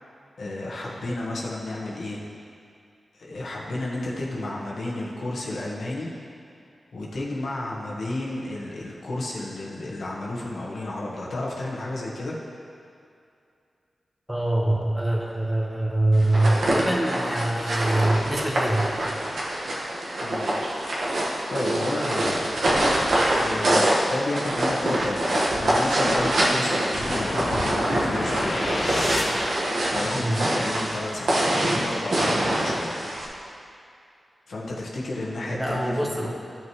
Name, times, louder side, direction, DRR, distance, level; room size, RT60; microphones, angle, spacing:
voice 1, 0.4-2.2 3.1-6.1 6.9-12.4 20.2-20.5 21.2-22.5 23.3-28.6 29.9-33.0 34.5-36.3, left 2 dB, 80° left, -4 dB, 1.4 m, -32 dB
voice 2, 14.3-18.9 30.1-30.3 35.5-36.3, right 1 dB, 10° right, -2 dB, 1.2 m, -24 dB
sound 1, 16.2-33.3, right 1 dB, 80° right, 1.5 m, -25 dB
sound 2, 27.0-29.7, left 1 dB, 55° left, 1.3 m, -29 dB
13.0 x 5.9 x 3.2 m, 2.4 s
wide cardioid pair, 85°, 0 cm